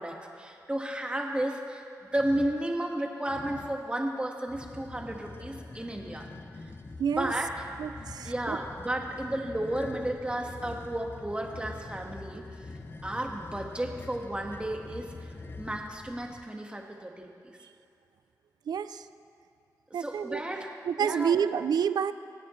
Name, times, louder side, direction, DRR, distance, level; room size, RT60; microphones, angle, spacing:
voice 1, 0.0-6.3 7.1-7.7 8.2-12.5 13.0-15.3 15.6-17.6 19.9-20.7 21.0-21.4, right 1 dB, 15° right, 1 dB, 1.6 m, -33 dB
sound 1, 2.1-2.6 3.2-3.9 4.5-16.5, left 3 dB, 35° left, 0.6 m, -45 dB
voice 2, 7.0-7.3 7.8-8.6 18.7-19.1 19.9-20.4 20.9-22.1, right 7 dB, 85° right, 13 dB, 0.4 m, -28 dB
25.5 x 8.6 x 3.2 m, 2.6 s
cardioid pair, 70°, 7 cm